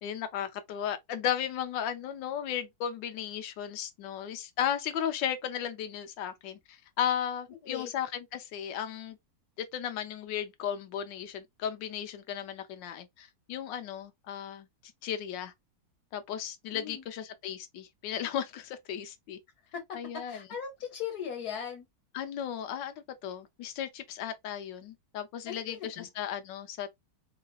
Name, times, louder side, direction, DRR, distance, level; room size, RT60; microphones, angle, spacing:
voice 1, 0.0-9.2 9.6-14.7 15.0-15.5 16.1-19.4 19.9-20.5 22.1-22.9 23.2-26.9, left 9 dB, 85° left, 1.4 m, -35 dB
voice 2, 16.7-17.0 20.3-21.9 25.5-26.1, left 8 dB, 60° left, 1.5 m, -38 dB
4.0 x 3.2 x 2.3 m
omnidirectional pair, 1.9 m